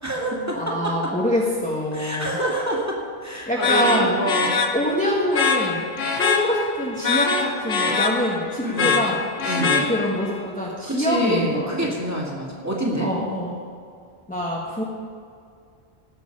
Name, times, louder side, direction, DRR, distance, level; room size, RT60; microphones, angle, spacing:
voice 1, 0.0-1.1 1.9-4.7 8.6-9.0 9.4-9.8 10.9-13.1, right 1 dB, 15° right, -4 dB, 2.5 m, -27 dB
voice 2, 0.5-2.4 3.5-4.2 4.7-5.9 6.1-12.0 13.0-13.6 14.3-14.8, equal, 10° left, -5 dB, 1.4 m, -25 dB
sound 1, 3.6-10.3, left 5 dB, 75° left, 1.3 m, -24 dB
18.0 x 7.6 x 5.4 m, 2.3 s
omnidirectional pair, 1.1 m